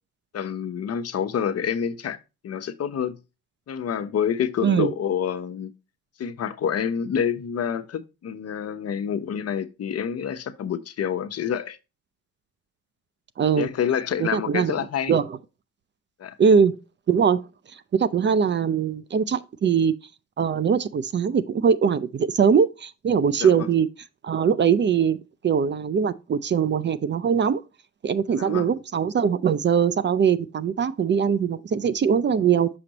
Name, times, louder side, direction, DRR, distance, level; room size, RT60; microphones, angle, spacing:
voice 1, 0.3-2.2 2.4-3.2 3.7-5.7 6.2-11.8 13.5-15.1 16.2-16.4 23.4-23.7 28.3-28.7, left 8 dB, 55° left, 0.9 m, -27 dB
voice 2, 4.6-4.9 13.4-13.7 14.2-14.7 15.1-15.4 16.4-16.8 17.1-17.4 17.9-19.9 20.4-23.9 24.2-27.6 28.0-32.7, right 7 dB, 35° right, 0.5 m, -21 dB
6.3 x 6.1 x 2.9 m
cardioid pair, 90°, 30 cm